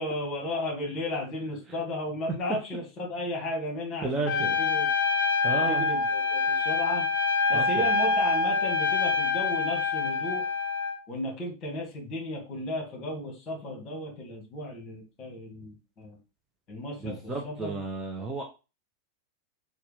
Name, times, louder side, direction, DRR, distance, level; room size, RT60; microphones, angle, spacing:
voice 1, 0.0-4.9 5.7-7.1 7.5-10.5 11.1-16.2 16.7-17.8, left 1 dB, 30° left, 0 dB, 1.9 m, -34 dB
voice 2, 4.0-4.6 5.4-5.9 7.5-7.9 17.0-18.4, right 3 dB, 15° right, 0 dB, 0.7 m, -33 dB
Trumpet, 4.3-11.0, left 4 dB, 60° left, 0.6 m, -26 dB
4.3 x 2.4 x 3.4 m, 0.30 s
figure-of-eight pair, 90°, 0 cm